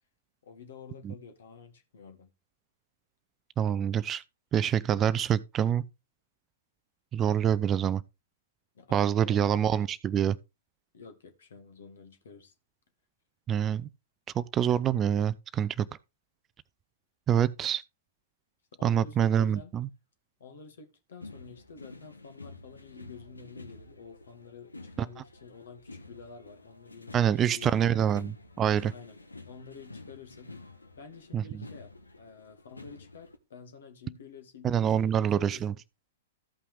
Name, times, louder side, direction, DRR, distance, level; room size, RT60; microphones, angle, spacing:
voice 1, 0.4-2.3 8.7-9.4 10.9-12.5 18.7-19.7 20.4-28.1 28.9-29.2 29.5-30.5 31.0-31.9 32.2-35.7, left 5 dB, 60° left, 2.1 m, -49 dB
voice 2, 3.6-4.2 4.5-5.8 7.1-8.0 8.9-10.4 13.5-13.9 14.3-15.9 17.3-17.8 18.8-19.9 27.1-28.9 31.3-31.6 34.6-35.7, right 9 dB, 25° right, 0.4 m, -26 dB
sound 1, 21.2-33.4, left 2 dB, 80° left, 1.3 m, -49 dB
14.0 x 5.5 x 3.5 m
figure-of-eight pair, 105°, 0 cm